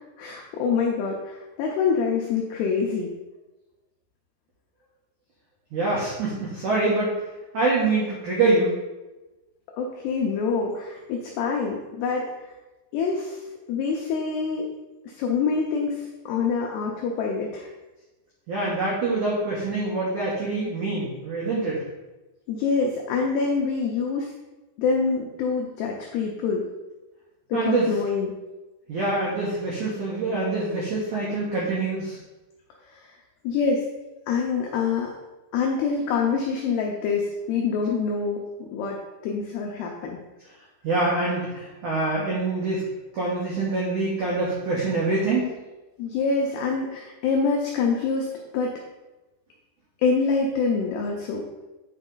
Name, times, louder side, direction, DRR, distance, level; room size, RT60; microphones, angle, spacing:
voice 1, 0.2-3.1 9.8-12.5 12.9-13.4 13.7-14.7 15.0-17.7 22.5-24.3 24.8-26.6 27.5-28.3 32.9-33.1 33.4-33.9 34.3-35.1 35.5-39.0 39.2-40.2 46.0-48.7 50.0-51.5, left 5 dB, 85° left, 0 dB, 2.3 m, -26 dB
voice 2, 5.7-7.1 7.5-8.7 18.5-21.8 27.5-27.9 28.9-32.2 40.8-42.8 43.1-45.5, right 3 dB, 80° right, -6 dB, 1.7 m, -25 dB
9.0 x 5.2 x 3.9 m, 1.1 s
omnidirectional pair, 5.7 m